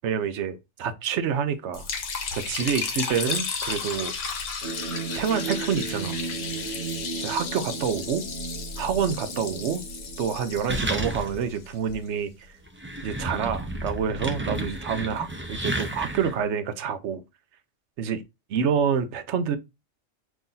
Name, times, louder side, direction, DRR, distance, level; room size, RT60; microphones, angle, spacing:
voice 1, 0.0-1.9 2.3-4.1 5.1-6.2 7.2-8.2 8.8-9.8 10.2-12.3 13.0-17.2 18.0-18.2 18.5-19.6, right 7 dB, 65° right, 0.9 m, -27 dB
Liquid, 1.7-11.9, left 5 dB, 70° left, 1.2 m, -34 dB
sound 1, 4.6-10.8, right 5 dB, 50° right, 1.5 m, -36 dB
sound 2, 10.7-11.5 11.9-12.0 12.6-16.4, right 1 dB, 20° right, 0.3 m, -32 dB
5.6 x 3.1 x 2.6 m
omnidirectional pair, 1.3 m